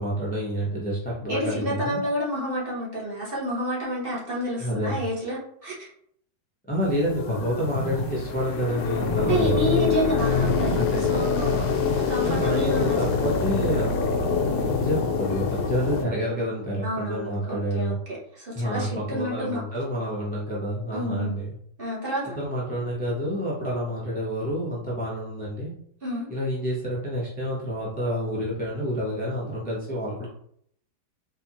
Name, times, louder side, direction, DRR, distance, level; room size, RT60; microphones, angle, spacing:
voice 1, 0.0-2.0 4.6-5.0 6.7-9.6 10.6-11.3 12.2-13.9 14.4-18.0 18.5-21.5 22.3-25.7 26.3-30.3, equal, 10° left, -6 dB, 0.4 m, -28 dB
voice 2, 1.3-5.9 9.2-13.3 16.8-19.6 20.9-21.4 21.8-22.4 26.0-26.3, equal, 35° right, -6 dB, 1.2 m, -29 dB
sound 1, 6.8-16.0, left 5 dB, 75° left, 1.1 m, -25 dB
4.0 x 2.7 x 2.9 m, 0.67 s
omnidirectional pair, 1.8 m